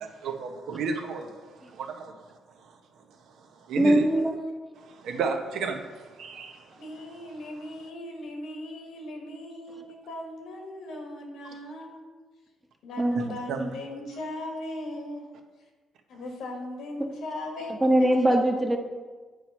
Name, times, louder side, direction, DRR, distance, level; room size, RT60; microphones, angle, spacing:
voice 1, 0.0-2.3 2.6-2.7 3.4-4.0 4.8-6.8 13.1-13.7, right 5 dB, 75° right, 5 dB, 0.8 m, -33 dB
voice 2, 3.8-4.4 9.7-9.8 13.0-13.4 17.7-18.8, right 1 dB, 15° right, 3 dB, 0.9 m, -22 dB
voice 3, 6.8-12.0 12.8-15.3 16.1-17.7 18.0-18.1, left 1 dB, 80° left, 2 dB, 1.4 m, -38 dB
9.2 x 3.1 x 5.4 m, 1.4 s
cardioid pair, 90°, 0 cm